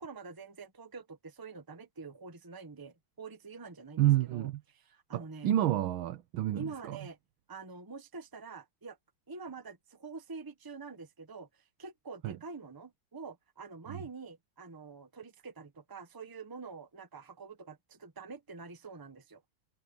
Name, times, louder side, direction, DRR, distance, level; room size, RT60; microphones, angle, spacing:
voice 1, 0.0-5.5 6.5-7.2 7.5-9.0 9.3-19.4, right 4 dB, 15° right, 1.2 m, -46 dB
voice 2, 4.0-4.6 5.1-7.0 12.2-12.4 13.9-14.0, right 13 dB, 80° right, 1.6 m, -29 dB
omnidirectional pair, 2.2 m